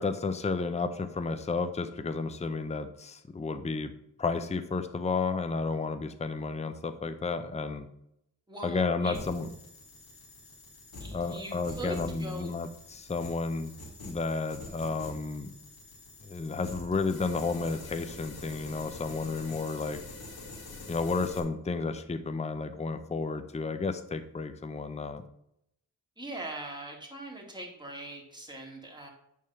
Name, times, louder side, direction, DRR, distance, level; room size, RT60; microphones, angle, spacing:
voice 1, 0.0-3.9 4.2-7.9 8.6-9.5 11.1-13.8 14.0-15.5 16.2-20.0 20.9-25.2, left 4 dB, 20° left, 9 dB, 0.6 m, -32 dB
voice 2, 8.5-9.2 11.0-12.5 26.2-29.1, right 1 dB, 10° right, -1 dB, 2.4 m, -41 dB
sound 1, 9.1-21.4, left 2 dB, 85° left, 2.1 m, -46 dB
9.7 x 3.7 x 6.8 m, 0.77 s
wide cardioid pair, 110°, 36 cm